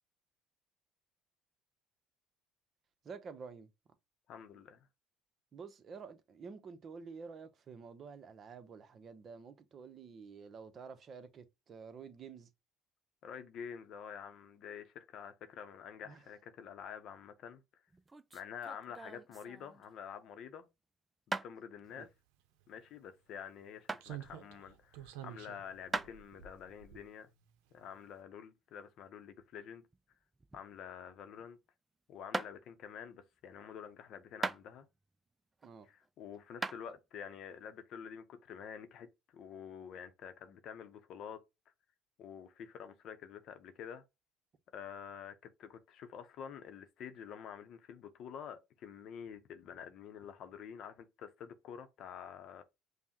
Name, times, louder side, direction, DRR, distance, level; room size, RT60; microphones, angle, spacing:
voice 1, 3.0-3.7 5.5-12.5 16.1-16.2 22.0-22.1 35.6-35.9, right 5 dB, 45° right, 0.7 m, -50 dB
voice 2, 4.3-4.8 13.2-17.6 18.3-20.7 21.3-22.1 22.7-27.3 27.7-29.8 30.5-31.6 32.1-34.9 35.8-41.4 42.2-44.0 44.7-52.6, left 8 dB, 60° left, 0.6 m, -48 dB
sound 1, 17.9-20.0 21.3-21.5 23.9-24.1 25.9-26.2 29.4-30.8 31.1-31.5 32.3-32.5 34.4-35.0 35.6-36.1 36.6-36.8, right 3 dB, 20° right, 0.3 m, -40 dB
Slam, 22.6-22.7 24.0-27.5 27.8-28.0, right 11 dB, 85° right, 0.6 m, -50 dB
5.3 x 2.1 x 2.9 m
supercardioid pair, 90°, 0 cm